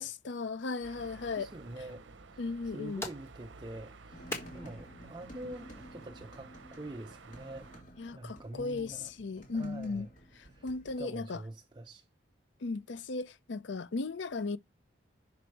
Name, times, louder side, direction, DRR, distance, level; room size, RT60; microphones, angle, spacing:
voice 1, 0.0-1.5 2.4-3.0 8.0-10.1 10.6-11.4 12.6-14.6, left 3 dB, 75° left, 0.5 m, -36 dB
sound 1, 0.8-7.8, right 4 dB, 80° right, 0.7 m, -53 dB
voice 2, 1.3-7.7 8.1-9.1 9.5-10.1 10.4-10.7 11.0-12.1, right 1 dB, 25° right, 0.5 m, -46 dB
sound 2, 2.5-7.6, left 2 dB, 15° left, 1.6 m, -47 dB
sound 3, 4.1-11.0, right 1 dB, 40° left, 2.5 m, -52 dB
6.0 x 5.2 x 4.6 m
head